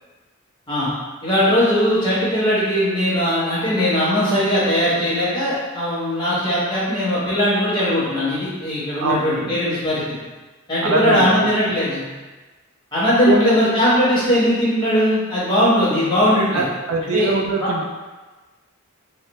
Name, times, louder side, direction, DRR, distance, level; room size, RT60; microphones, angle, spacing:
voice 1, 1.2-10.2 10.7-12.0 12.9-16.7 17.1-17.3 17.6-17.7, equal, 20° left, -10 dB, 1.2 m, -19 dB
voice 2, 9.0-9.6 10.8-11.3 13.3-13.6 16.5-17.8, right 2 dB, 75° right, 2 dB, 0.4 m, -22 dB
3.3 x 2.0 x 3.0 m, 1.2 s
head